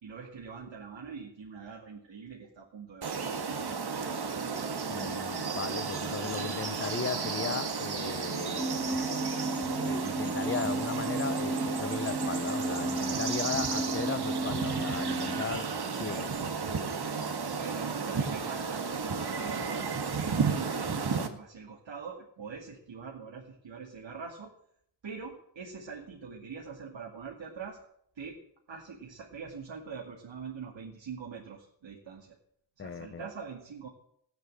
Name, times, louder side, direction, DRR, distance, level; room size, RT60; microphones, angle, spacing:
voice 1, 0.0-3.7 16.0-16.3 17.5-19.9 20.2-24.5 25.0-27.8 28.2-28.4 28.7-32.4 32.8-33.9, right 5 dB, 85° right, 2.5 m, -43 dB
sound 1, 3.0-21.3, right 5 dB, 60° right, 1.8 m, -33 dB
voice 2, 4.9-8.8 9.8-15.7 16.0-16.4 20.4-20.6 32.8-33.3, left 6 dB, 30° left, 0.7 m, -37 dB
sound 2, 8.6-15.4, right 2 dB, 5° right, 2.1 m, -34 dB
16.0 x 9.2 x 7.6 m
wide cardioid pair, 85°, 43 cm